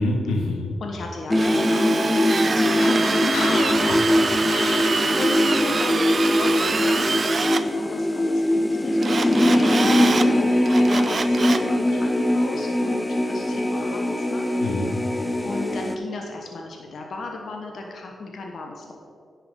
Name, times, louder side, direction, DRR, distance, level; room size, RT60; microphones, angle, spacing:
voice 1, 0.0-0.7 3.3-5.2 14.6-14.9, left 2 dB, 90° left, 1 dB, 1.2 m, -28 dB
voice 2, 0.8-3.7 4.5-14.4 15.4-18.9, left 3 dB, 70° left, 1 dB, 1.1 m, -34 dB
sound 1, 1.3-16.0, left 1 dB, 20° left, 0.7 m, -22 dB
Drill, 1.3-7.6 9.0-10.3 10.7-11.7, right 4 dB, 50° right, 0.6 m, -25 dB
9.8 x 5.8 x 5.5 m, 2.3 s
supercardioid pair, 45°, 0 cm